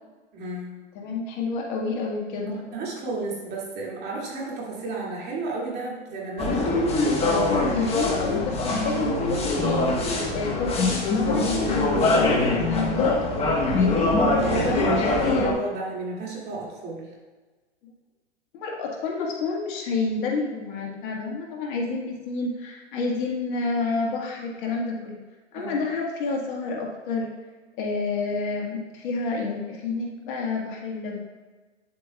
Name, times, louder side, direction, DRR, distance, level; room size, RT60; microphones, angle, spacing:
voice 1, 0.3-0.8 2.6-6.9 14.5-17.1 25.5-25.8, right 3 dB, 30° right, -4 dB, 2.4 m, -33 dB
voice 2, 1.0-2.7 7.2-9.9 10.3-14.3 14.7-15.5 18.5-25.2 25.5-27.3 27.8-31.2, left 4 dB, 45° left, -1 dB, 1.6 m, -29 dB
sound 1, 6.4-15.5, left 2 dB, 15° left, 1.2 m, -23 dB
9.4 x 7.7 x 2.3 m, 1.3 s
hypercardioid pair, 125°, 35 cm